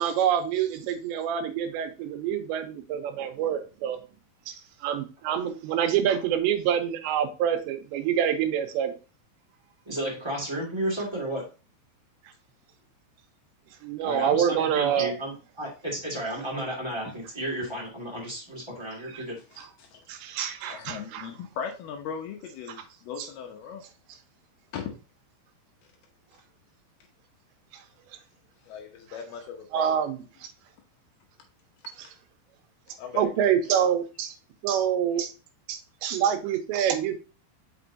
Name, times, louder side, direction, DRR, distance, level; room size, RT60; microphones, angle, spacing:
voice 1, 0.0-4.0 4.5-4.6 4.8-9.0 13.8-15.1 19.0-19.3 19.6-19.7 20.1-21.3 23.2-23.3 29.7-30.5 32.0-32.1 33.1-34.3 34.6-35.3 35.7-37.2, right 9 dB, 85° right, 7 dB, 3.0 m, -26 dB
voice 2, 9.8-11.4 14.0-19.4, right 1 dB, 15° right, -4 dB, 0.9 m, -32 dB
voice 3, 19.5-20.0 20.7-23.8 24.7-24.9 28.6-30.0 33.0-33.5, left 7 dB, 75° left, 3 dB, 2.6 m, -38 dB
6.1 x 5.9 x 2.7 m, 0.32 s
omnidirectional pair, 5.1 m